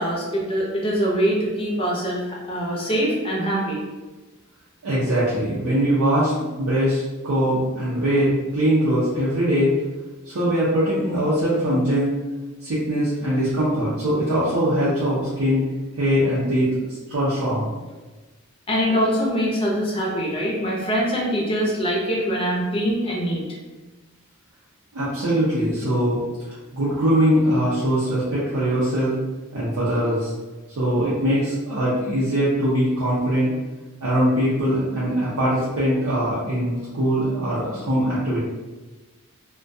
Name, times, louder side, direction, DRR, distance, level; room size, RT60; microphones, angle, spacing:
voice 1, 0.0-3.8 18.7-23.4, equal, 25° left, -4 dB, 0.5 m, -23 dB
voice 2, 4.8-9.7 10.2-12.1 12.6-15.6 15.9-17.7 24.9-29.2 29.5-30.3 30.8-33.5 34.0-38.4, equal, 75° right, -8 dB, 0.5 m, -22 dB
2.3 x 2.2 x 2.5 m, 1.2 s
head